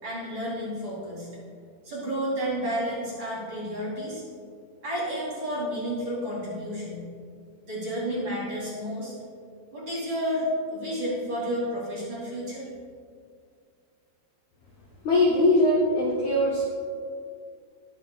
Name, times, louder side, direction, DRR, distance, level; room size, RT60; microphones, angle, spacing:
voice 1, 0.0-1.3 1.8-4.2 4.8-7.0 7.7-9.1 9.7-12.7, equal, 30° right, -7 dB, 3.1 m, -31 dB
voice 2, 15.0-16.7, left 1 dB, 75° left, -4 dB, 1.7 m, -21 dB
20.0 x 7.4 x 2.4 m, 2.2 s
omnidirectional pair, 5.0 m